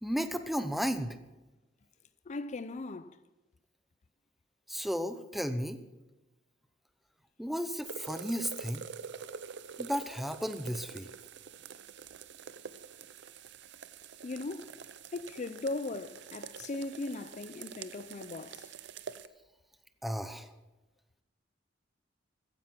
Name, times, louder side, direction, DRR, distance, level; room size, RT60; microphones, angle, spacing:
voice 1, 0.0-1.2 4.7-5.8 7.4-8.9 9.8-11.1 20.0-20.5, equal, ahead, 0.7 m, -34 dB
voice 2, 2.3-3.2 14.2-14.8 15.1-18.8, left 3 dB, 40° left, 0.4 m, -38 dB
sound 1, 7.8-19.3, right 6 dB, 65° right, 0.6 m, -46 dB
15.0 x 10.5 x 5.9 m
head